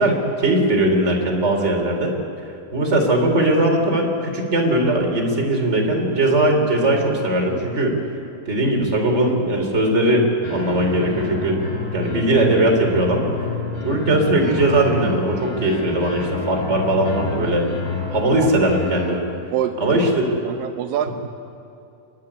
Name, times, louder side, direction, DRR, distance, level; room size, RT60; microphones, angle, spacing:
voice 1, 0.0-2.1 2.7-8.0 8.4-11.6 11.9-13.2 13.8-19.2 19.8-20.3, right 1 dB, 20° right, 1 dB, 3.0 m, -19 dB
sound 1, 10.4-19.1, left 3 dB, 35° left, 4.1 m, -29 dB
voice 2, 13.6-14.0 18.4-18.5 19.5-20.0 20.5-21.1, right 11 dB, 80° right, 7 dB, 2.3 m, -26 dB
30.0 x 10.5 x 9.7 m, 2.8 s
omnidirectional pair, 4.1 m